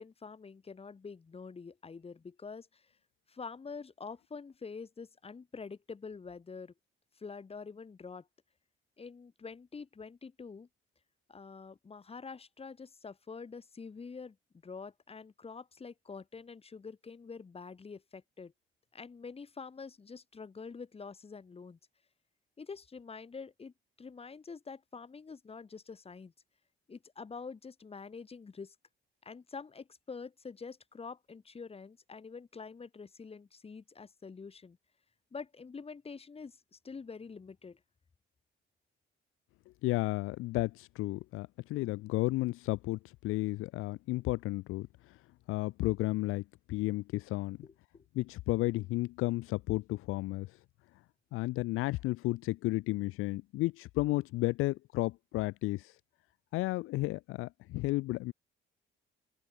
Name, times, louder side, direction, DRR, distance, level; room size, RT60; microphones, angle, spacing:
voice 1, 0.0-2.9 3.3-6.7 7.1-8.3 9.0-10.7 11.3-14.4 14.6-18.5 18.9-21.8 22.6-26.3 26.9-28.8 29.2-34.8 35.3-37.8 47.6-48.1, left 5 dB, 30° left, 7.9 m, -46 dB
voice 2, 39.8-43.0 43.2-44.9 45.5-46.4 46.7-47.6 48.2-50.5 51.3-55.9 56.5-58.3, left 19 dB, 80° left, 0.5 m, -32 dB
open air
cardioid pair, 115°, 21 cm